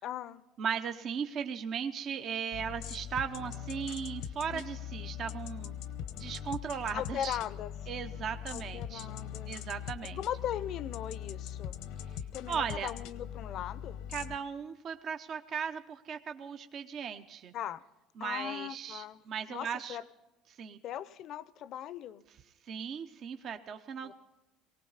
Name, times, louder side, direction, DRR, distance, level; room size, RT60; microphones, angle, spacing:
voice 1, 0.0-0.4 4.5-4.6 6.9-7.7 8.5-9.6 10.2-11.8 12.3-14.0 17.5-17.8 18.2-19.2 19.5-20.0 20.8-22.2 24.0-24.1, left 11 dB, 55° left, 18 dB, 0.7 m, -39 dB
voice 2, 0.6-5.7 6.1-7.4 7.9-9.1 9.5-10.2 12.1-12.9 14.1-17.5 18.2-20.0 20.5-20.8 22.6-24.1, right 7 dB, 45° right, 7 dB, 0.7 m, -37 dB
sound 1, 2.5-14.4, left 9 dB, 80° left, 1.0 m, -41 dB
20.0 x 18.0 x 4.0 m, 1.1 s
supercardioid pair, 110°, 0 cm